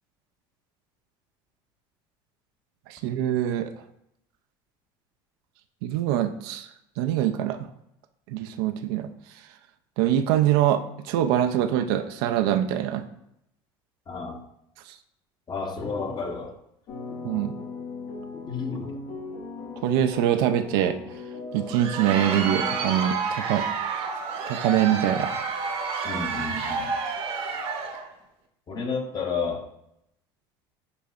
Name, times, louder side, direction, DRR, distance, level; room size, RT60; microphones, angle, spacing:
voice 1, 2.9-3.7 5.8-6.7 7.0-7.7 8.3-9.1 10.0-13.0 14.9-15.0 17.2-17.5 19.8-21.0 21.5-23.6 24.5-25.4, right 11 dB, 80° right, 8 dB, 0.4 m, -24 dB
voice 2, 14.1-14.4 15.5-16.5 18.5-18.9 26.0-26.9 28.7-29.6, left 4 dB, 35° left, 3 dB, 0.9 m, -31 dB
sound 1, 16.9-22.9, left 4 dB, 65° left, 1.0 m, -38 dB
Crowd, 21.5-28.1, right 5 dB, 55° right, 0.8 m, -29 dB
6.7 x 2.7 x 2.4 m, 0.78 s
supercardioid pair, 85°, 12 cm